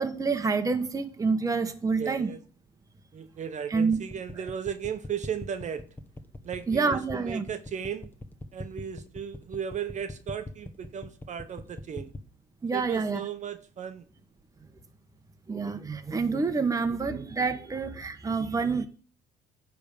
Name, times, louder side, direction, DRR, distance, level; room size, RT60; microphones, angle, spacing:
voice 1, 0.0-2.3 3.7-4.0 6.7-7.4 12.6-13.2 15.5-18.9, right 4 dB, 20° right, 1.0 m, -27 dB
voice 2, 2.0-2.4 3.1-5.8 6.4-8.1 8.5-12.1 12.7-14.0, right 8 dB, 45° right, 1.0 m, -36 dB
sound 1, 3.7-12.3, left 2 dB, 10° left, 1.0 m, -41 dB
9.8 x 3.6 x 6.7 m
cardioid pair, 110°, 17 cm